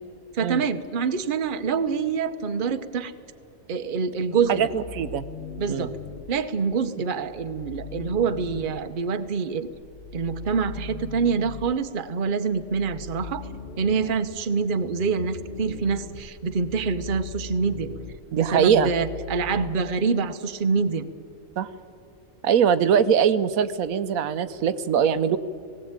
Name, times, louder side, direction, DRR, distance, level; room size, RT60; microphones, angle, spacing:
voice 1, 0.3-3.1 3.7-4.7 5.6-5.9 6.3-9.7 10.1-13.5 13.8-17.9 18.4-21.1, right 5 dB, 45° right, 9 dB, 0.9 m, -26 dB
sound 1, 4.4-6.3 7.2-8.8 9.7-11.8 12.5-19.7, left 5 dB, 45° left, 0.9 m, -40 dB
voice 2, 4.5-5.2 5.7-5.9 18.3-18.9 21.6-21.7 22.4-25.4, right 8 dB, 85° right, 12 dB, 1.1 m, -22 dB
18.5 x 16.5 x 8.9 m, 2.5 s
omnidirectional pair, 1.4 m